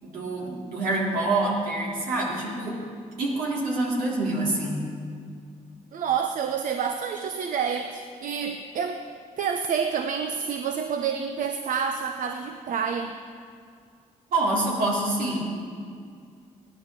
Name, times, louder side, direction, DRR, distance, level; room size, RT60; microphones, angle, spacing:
voice 1, 0.0-2.8 3.2-4.9 14.3-15.6, right 2 dB, 90° right, -4 dB, 3.5 m, -26 dB
voice 2, 5.9-9.0 9.4-13.1, right 7 dB, 70° right, 6 dB, 0.8 m, -28 dB
16.5 x 11.5 x 6.3 m, 2.2 s
cardioid pair, 80°, 14 cm